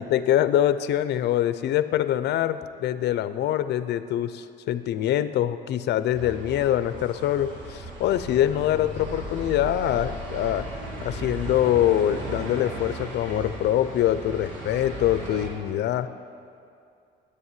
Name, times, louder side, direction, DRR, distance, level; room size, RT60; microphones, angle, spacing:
voice 1, 0.0-10.7 11.0-16.1, left 11 dB, 65° left, 13 dB, 0.6 m, -24 dB
sound 1, 6.1-15.5, right 1 dB, 85° right, 2.6 m, -36 dB
10.0 x 8.3 x 9.7 m, 2.5 s
cardioid pair, 125°, 19 cm